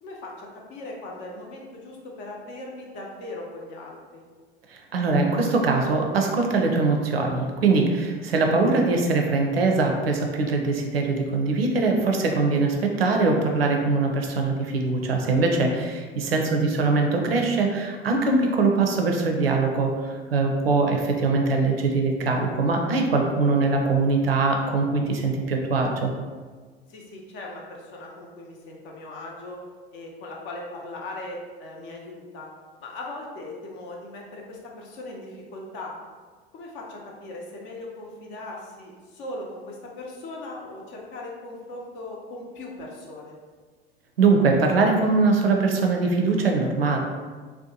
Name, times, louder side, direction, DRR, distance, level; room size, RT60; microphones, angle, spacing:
voice 1, 0.0-4.2 16.5-16.6 23.4-23.6 26.9-29.6 29.9-32.5 32.8-35.9 36.5-43.3, left 2 dB, 40° left, -1 dB, 0.6 m, -39 dB
voice 2, 4.7-26.1 44.2-47.0, right 3 dB, 80° right, 2 dB, 0.5 m, -22 dB
2.6 x 2.1 x 2.7 m, 1.5 s
figure-of-eight pair, 70°, 29 cm